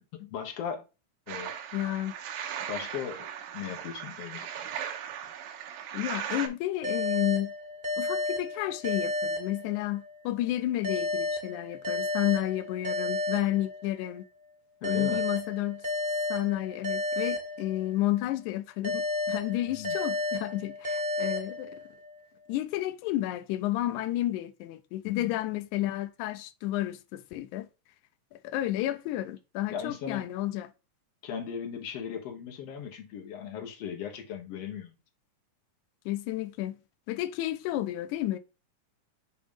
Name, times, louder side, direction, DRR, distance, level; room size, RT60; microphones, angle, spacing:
voice 1, 0.1-0.9 1.3-1.5 2.7-3.3 3.5-4.5 14.8-15.2 19.7-20.0 25.0-25.3 29.7-30.3 31.2-35.0, left 8 dB, 60° left, 2.0 m, -37 dB
sound 1, 1.3-6.5, right 9 dB, 85° right, 2.4 m, -38 dB
voice 2, 1.7-2.1 5.9-7.5 8.0-14.2 14.8-15.9 16.3-21.8 22.5-27.7 28.4-30.7 36.1-36.8 37.1-38.4, left 15 dB, 80° left, 2.0 m, -31 dB
sound 2, 6.8-10.2 10.8-14.2 14.8-18.2 18.8-22.2, left 2 dB, 40° right, 0.6 m, -32 dB
7.3 x 3.0 x 5.0 m
omnidirectional pair, 3.6 m